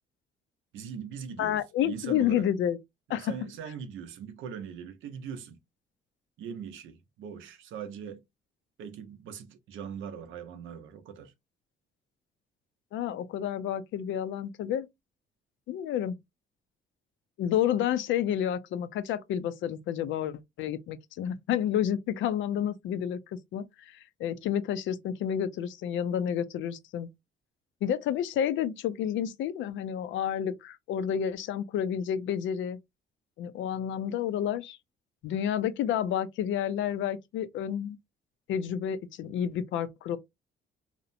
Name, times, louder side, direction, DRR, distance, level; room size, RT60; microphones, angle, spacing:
voice 1, 0.7-2.5 3.1-5.6 6.4-8.2 8.8-11.3, right 7 dB, 80° right, 0.6 m, -41 dB
voice 2, 1.4-2.8 3.1-3.3 12.9-14.9 15.7-16.2 17.4-23.2 23.5-27.1 27.8-32.8 33.4-34.8 35.2-38.0 38.5-40.2, left 9 dB, 75° left, 0.4 m, -30 dB
2.8 x 2.0 x 2.5 m
cardioid pair, 90°, 20 cm